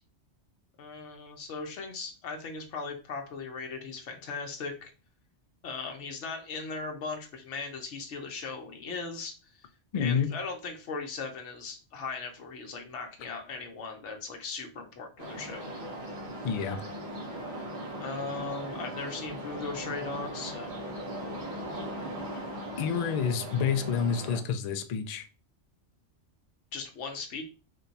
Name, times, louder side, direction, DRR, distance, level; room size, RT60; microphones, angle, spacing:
voice 1, 0.8-4.9 5.6-9.3 10.0-15.7 18.0-20.9 26.7-27.4, left 4 dB, 80° left, 3 dB, 1.1 m, -38 dB
voice 2, 9.9-10.3 16.4-16.8 22.8-25.3, left 6 dB, 60° left, 8 dB, 0.4 m, -28 dB
sound 1, 15.2-24.4, right 1 dB, 65° right, 1.3 m, -39 dB
3.7 x 2.3 x 3.9 m, 0.34 s
omnidirectional pair, 1.2 m